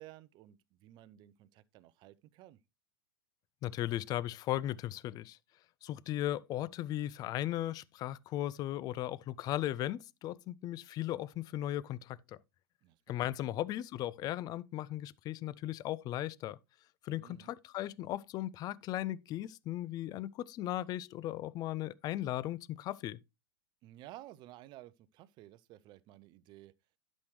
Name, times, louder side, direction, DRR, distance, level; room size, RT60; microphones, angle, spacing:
voice 1, 0.0-2.6 12.8-13.0 13.3-13.4 17.2-17.5 23.8-26.7, right 15 dB, 35° right, 0.6 m, -54 dB
voice 2, 3.6-5.4 5.8-12.4 13.1-16.6 17.0-23.2, left 13 dB, 30° left, 0.4 m, -37 dB
11.5 x 6.3 x 3.2 m
figure-of-eight pair, 95°, 13 cm